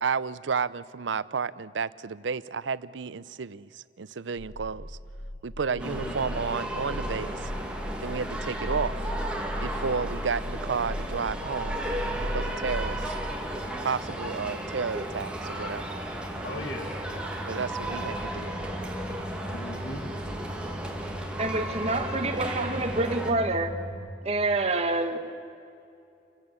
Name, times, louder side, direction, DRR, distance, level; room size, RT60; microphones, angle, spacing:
voice 1, 0.0-3.7 4.0-4.9 5.4-7.4 8.0-8.9 9.6-11.8 12.3-13.1 13.8-16.0 17.5-18.6, right 5 dB, 80° right, 17 dB, 0.6 m, -31 dB
sound 1, 4.4-23.9, equal, 85° left, 4.5 m, -38 dB
voice 2, 5.7-6.1 16.4-17.0 19.5-20.0, left 2 dB, 65° left, 3 dB, 2.0 m, -38 dB
sound 2, 5.8-23.3, right 1 dB, 5° right, 2.1 m, -35 dB
voice 3, 21.4-23.7 24.2-25.2, right 2 dB, 35° right, 7 dB, 1.5 m, -27 dB
29.0 x 15.0 x 8.3 m, 2.5 s
head